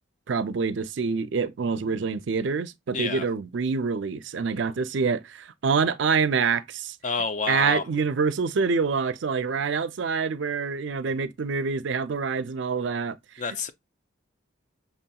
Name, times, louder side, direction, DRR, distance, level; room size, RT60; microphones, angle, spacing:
voice 1, 0.3-7.0 7.5-13.2, right 5 dB, 65° right, 0.4 m, -26 dB
voice 2, 2.9-3.3 7.0-7.9 13.4-13.7, left 4 dB, 40° left, 0.4 m, -28 dB
5.7 x 2.8 x 2.2 m
head